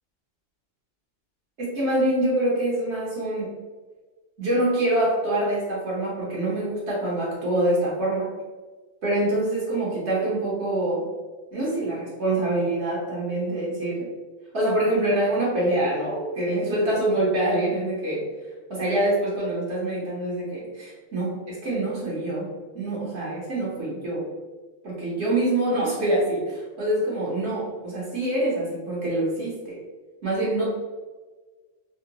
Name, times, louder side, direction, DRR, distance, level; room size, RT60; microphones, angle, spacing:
voice 1, 1.6-3.5 4.4-8.3 9.0-11.0 11.5-14.1 14.5-18.2 18.7-22.5 22.7-24.2 24.8-29.8 30.2-30.7, right 1 dB, 60° right, -6 dB, 1.1 m, -25 dB
3.6 x 2.1 x 2.7 m, 1.3 s
omnidirectional pair, 1.4 m